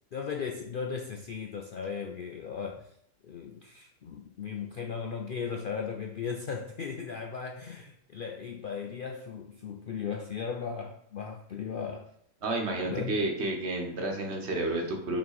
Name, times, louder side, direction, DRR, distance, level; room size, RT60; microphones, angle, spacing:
voice 1, 0.1-2.9 3.2-12.1 12.8-13.2, left 6 dB, 90° left, 3 dB, 0.4 m, -37 dB
voice 2, 12.4-15.2, right 2 dB, 50° right, 2 dB, 1.3 m, -31 dB
5.5 x 3.8 x 4.7 m, 0.69 s
omnidirectional pair, 1.5 m